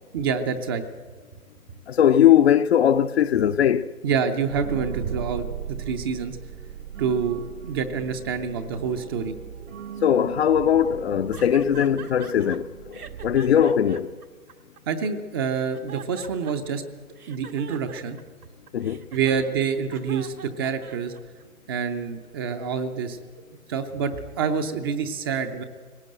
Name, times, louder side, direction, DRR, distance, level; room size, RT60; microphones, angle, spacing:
voice 1, 0.1-0.8 4.0-6.4 7.0-9.3 14.9-16.8 17.3-18.2 19.1-21.1 21.7-23.2 23.7-25.6, right 6 dB, 15° right, 0.6 m, -27 dB
voice 2, 1.9-3.9 10.0-14.1 18.7-19.0, left 9 dB, 45° left, 0.7 m, -20 dB
sound 1, 4.5-14.1, right 9 dB, 60° right, 1.0 m, -38 dB
sound 2, 11.3-12.6 12.9-15.1 15.5-16.8 17.2-21.4, right 7 dB, 80° right, 1.9 m, -43 dB
19.0 x 18.0 x 7.8 m
hypercardioid pair, 135°, 44 cm